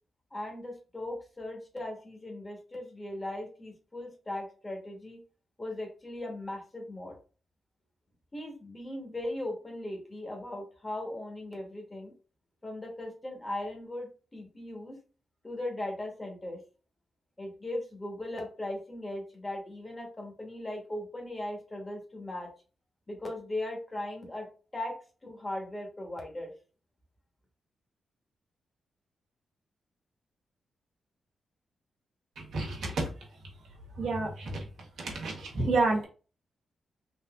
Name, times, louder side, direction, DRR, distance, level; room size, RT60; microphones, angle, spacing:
voice 1, 0.3-5.2 5.6-7.2 8.3-12.1 12.6-15.0 15.4-16.6 17.4-22.5 23.1-25.0 25.2-26.5, left 1 dB, 20° left, 1 dB, 0.9 m, -38 dB
voice 2, 32.4-33.1 34.0-34.6 35.0-36.0, right 3 dB, 90° right, -1 dB, 1.1 m, -30 dB
3.6 x 2.5 x 2.3 m, 0.36 s
wide cardioid pair, 120°, 0 cm